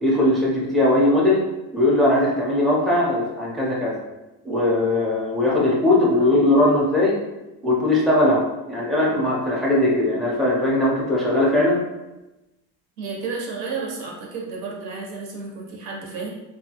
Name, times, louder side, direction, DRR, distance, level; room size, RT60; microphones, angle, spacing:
voice 1, 0.0-1.4 1.7-4.0 4.4-7.2 7.6-11.8, left 1 dB, ahead, -5 dB, 0.5 m, -19 dB
voice 2, 13.0-16.3, right 4 dB, 90° right, -2 dB, 0.9 m, -32 dB
2.7 x 2.3 x 2.8 m, 1.0 s
cardioid pair, 135°, 36 cm